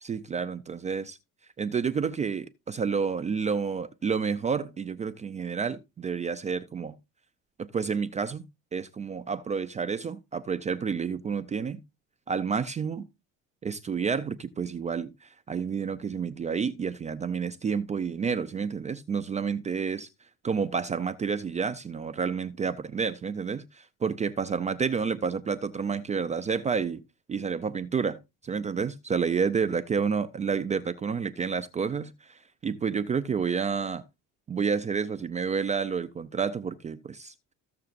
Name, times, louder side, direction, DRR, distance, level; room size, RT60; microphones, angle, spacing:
voice 1, 0.0-1.2 1.6-7.0 7.7-8.5 8.7-11.8 12.3-13.1 13.6-20.1 20.4-27.0 27.3-34.0 34.5-37.5, right 6 dB, 20° right, 0.4 m, -30 dB
14.5 x 6.6 x 2.5 m
cardioid pair, 155°, 35 cm